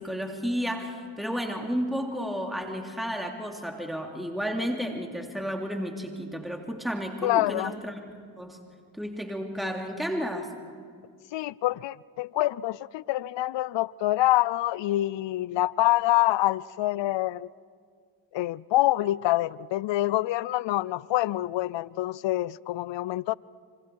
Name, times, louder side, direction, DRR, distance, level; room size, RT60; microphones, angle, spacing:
voice 1, 0.0-8.0 8.4-8.6 9.0-10.5, equal, ahead, 2 dB, 2.9 m, -32 dB
voice 2, 7.2-7.7 11.3-17.5 18.3-23.4, left 16 dB, 60° left, 22 dB, 0.6 m, -26 dB
27.0 x 25.0 x 4.7 m, 2.1 s
supercardioid pair, 45°, 50 cm